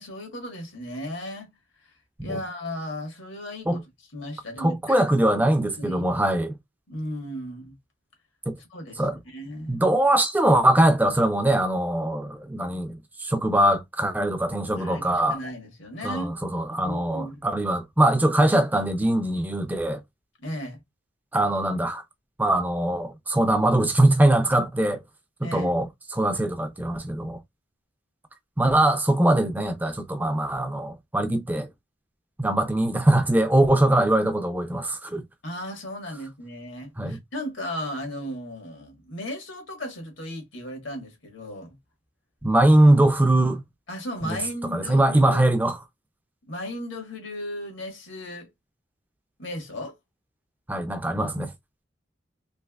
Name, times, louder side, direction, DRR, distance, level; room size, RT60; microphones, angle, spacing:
voice 1, 0.0-1.5 1.8-1.9 2.2-3.8 4.1-5.0 5.3-5.4 5.8-6.1 6.9-7.7 8.6-9.8 14.8-16.3 16.7-17.5 20.4-20.8 25.4-25.7 35.4-41.8 43.9-45.4 46.5-48.5 49.4-49.9, equal, 75° left, 1.4 m, -36 dB
voice 2, 4.6-6.5 8.5-8.6 9.0-9.2 9.7-15.4 16.0-20.0 21.3-22.0 22.4-25.0 25.4-25.9 26.1-27.4 28.6-31.7 32.4-35.2 37.0-37.2 42.4-43.6 44.2-44.4 44.7-45.8 50.7-51.5, right 1 dB, 10° right, 0.4 m, -22 dB
3.3 x 3.0 x 2.3 m
head